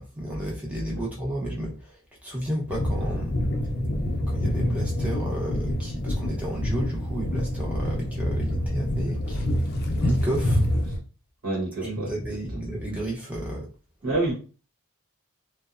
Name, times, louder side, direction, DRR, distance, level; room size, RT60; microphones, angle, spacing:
voice 1, 0.0-3.4 4.3-9.4 10.0-10.6 11.8-13.7, right 1 dB, 5° right, 0.7 m, -32 dB
sound 1, 2.7-11.0, left 1 dB, 45° left, 0.4 m, -27 dB
voice 2, 11.4-12.4 14.0-14.3, right 2 dB, 70° right, 0.9 m, -28 dB
2.9 x 2.0 x 2.4 m
head